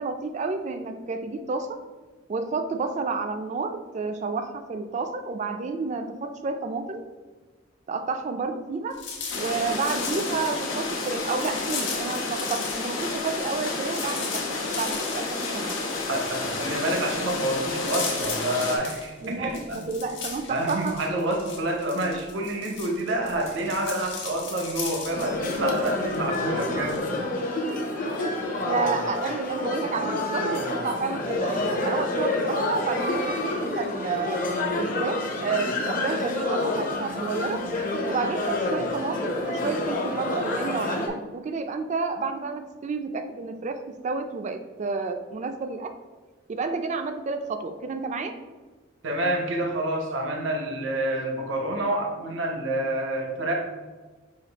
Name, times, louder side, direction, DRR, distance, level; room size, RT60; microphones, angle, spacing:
voice 1, 0.0-1.8 2.3-7.0 7.9-9.0 9.4-15.7 19.2-21.2 21.7-21.8 28.2-34.4 34.7-37.6 38.1-45.9 46.5-48.4, right 4 dB, 35° right, 8 dB, 0.3 m, -30 dB
sound 1, 8.9-12.8 13.1-27.2, left 5 dB, 60° left, 1.2 m, -37 dB
sound 2, 9.3-18.8, left 3 dB, 85° left, 0.9 m, -30 dB
voice 2, 16.1-19.8 20.5-27.0 49.0-53.5, right 1 dB, 70° right, 2 dB, 0.7 m, -28 dB
sound 3, 25.1-41.1, left 2 dB, 45° left, 0.6 m, -28 dB
5.0 x 2.4 x 3.9 m, 1.3 s
head